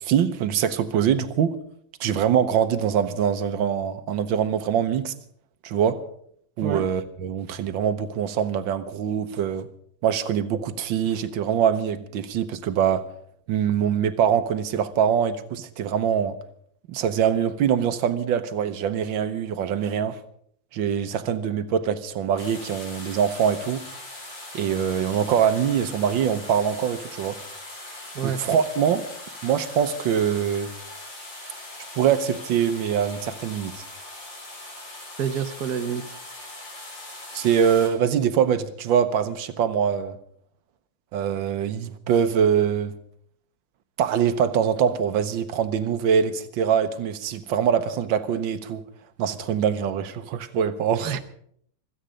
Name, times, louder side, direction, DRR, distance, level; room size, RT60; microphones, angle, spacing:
voice 1, 0.0-1.6 2.0-5.1 5.6-6.0 6.6-9.7 10.0-13.0 13.5-16.3 16.9-20.2 20.7-23.9 24.5-27.4 28.2-29.0 29.4-30.7 32.0-33.8 37.3-40.2 41.1-42.9 44.0-48.8 49.2-51.2, right 8 dB, 85° right, 1.7 m, -23 dB
sound 1, 22.4-37.9, left 2 dB, 75° left, 4.8 m, -40 dB
voice 2, 35.2-36.0 51.0-51.2, right 7 dB, 60° right, 1.4 m, -27 dB
26.5 x 9.0 x 5.1 m
omnidirectional pair, 2.0 m